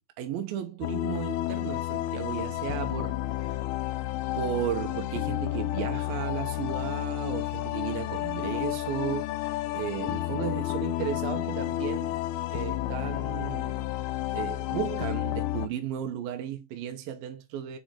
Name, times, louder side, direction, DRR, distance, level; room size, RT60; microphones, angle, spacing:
voice 1, 0.0-3.6 4.4-12.2 12.4-13.8 14.3-17.8, right 10 dB, 75° right, 2.3 m, -35 dB
sound 1, 0.8-15.7, left 15 dB, 90° left, 2.2 m, -31 dB
6.6 x 4.9 x 4.3 m
omnidirectional pair, 5.2 m